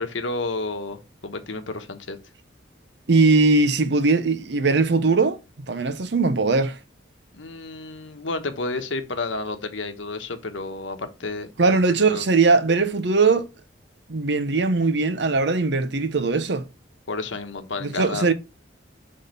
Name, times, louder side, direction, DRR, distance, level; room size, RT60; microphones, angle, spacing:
voice 1, 0.0-2.2 7.3-11.5 12.0-12.3 17.1-18.3, left 3 dB, 80° left, 1.1 m, -31 dB
voice 2, 3.1-5.4 5.7-6.8 11.6-13.5 14.1-16.7 17.8-18.3, right 3 dB, 65° right, 0.7 m, -20 dB
6.2 x 3.8 x 5.3 m
head